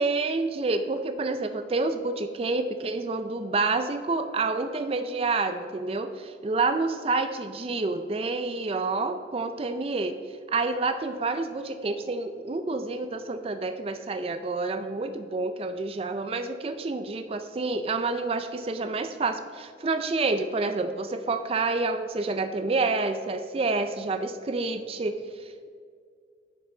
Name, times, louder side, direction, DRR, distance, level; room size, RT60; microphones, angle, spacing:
voice 1, 0.0-10.2 10.5-25.7, right 3 dB, 30° right, 8 dB, 0.4 m, -28 dB
10.0 x 5.5 x 3.8 m, 2.1 s
head